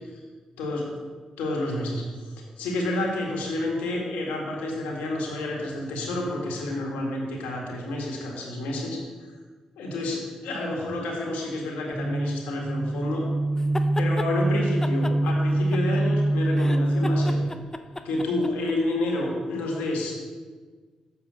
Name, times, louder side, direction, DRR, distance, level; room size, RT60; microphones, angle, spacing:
voice 1, 0.6-0.9 1.4-9.0 9.8-13.2 14.0-17.4 18.0-20.2, left 1 dB, 80° left, -1 dB, 1.8 m, -29 dB
sound 1, 11.9-17.5, right 1 dB, 45° left, 1.7 m, -24 dB
sound 2, 13.6-14.3 14.8-16.2 16.5-18.7, left 2 dB, 20° left, 0.7 m, -35 dB
7.1 x 5.3 x 6.3 m, 1.5 s
hypercardioid pair, 45°, 2 cm